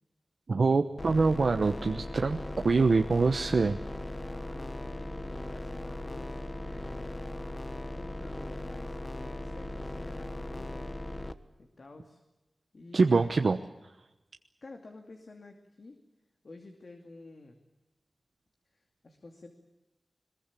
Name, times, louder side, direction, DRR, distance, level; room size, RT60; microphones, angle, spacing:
voice 1, 0.5-2.4 2.6-3.8 12.9-13.9, right 4 dB, 65° right, 6 dB, 1.0 m, -25 dB
sound 1, 1.0-11.3, left 1 dB, 25° left, 1.3 m, -38 dB
voice 2, 4.2-7.3 7.9-10.9 11.6-12.2 12.7-13.4 14.6-16.0 16.4-17.6 18.7-19.6, left 2 dB, 55° left, 4 dB, 2.5 m, -51 dB
22.5 x 21.5 x 8.5 m, 1.0 s
wide cardioid pair, 105°, 0 cm